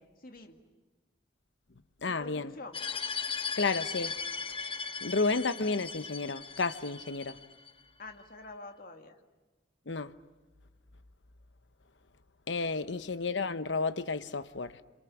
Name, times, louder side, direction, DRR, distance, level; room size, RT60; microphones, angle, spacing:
voice 1, 0.2-0.6 2.0-2.8 8.0-9.2 12.8-13.1, left 2 dB, 50° left, 2.1 m, -47 dB
voice 2, 2.0-2.5 3.6-4.2 5.0-7.4 9.9-10.1 12.5-14.8, left 3 dB, 70° left, 0.9 m, -31 dB
sound 1, 2.7-7.7, left 5 dB, 30° left, 1.0 m, -38 dB
27.5 x 27.5 x 7.1 m
head